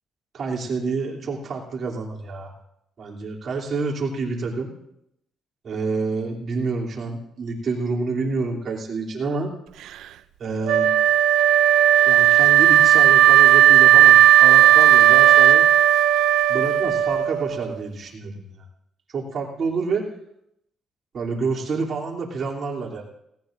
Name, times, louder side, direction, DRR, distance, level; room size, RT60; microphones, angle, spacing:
voice 1, 0.3-2.5 3.0-4.7 5.6-9.5 10.4-10.9 12.1-15.6 16.5-18.4 19.1-20.1 21.1-23.0, right 4 dB, 55° right, -2 dB, 3.2 m, -28 dB
Wind instrument woodwind instrument, 10.7-17.7, right 12 dB, 85° right, 0.5 m, -14 dB
18.5 x 17.5 x 2.6 m, 0.79 s
cardioid pair, 90°, 0 cm